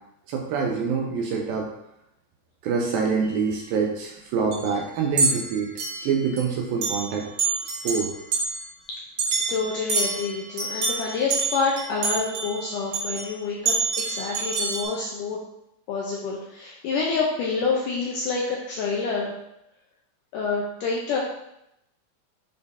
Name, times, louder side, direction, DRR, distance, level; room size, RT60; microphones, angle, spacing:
voice 1, 0.3-1.7 2.6-5.7 6.0-7.3 7.8-8.1, right 5 dB, 80° right, 0 dB, 2.2 m, -25 dB
sound 1, 3.3-3.4 4.5-4.7 5.2-6.4 6.8-7.1 7.4-8.6 9.2-13.3 13.7-14.8, right 3 dB, 55° right, 2.4 m, -27 dB
voice 2, 9.5-15.4 15.9-19.3 20.3-21.2, left 4 dB, 75° left, -3 dB, 1.9 m, -27 dB
10.0 x 4.3 x 2.7 m, 0.81 s
omnidirectional pair, 4.7 m